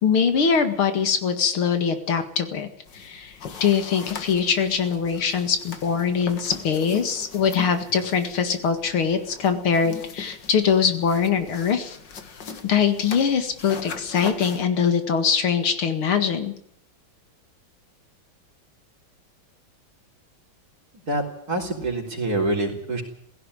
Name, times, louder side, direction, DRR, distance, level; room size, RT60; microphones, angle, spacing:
voice 1, 0.0-2.7 2.9-3.3 3.6-12.0 12.6-16.5, left 6 dB, 85° left, 8 dB, 2.8 m, -22 dB
sound 1, 2.9-14.6, left 6 dB, 60° left, 2.3 m, -40 dB
voice 2, 21.5-23.0, right 2 dB, 45° right, 1 dB, 4.5 m, -25 dB
16.5 x 16.5 x 9.9 m, 0.71 s
omnidirectional pair, 2.3 m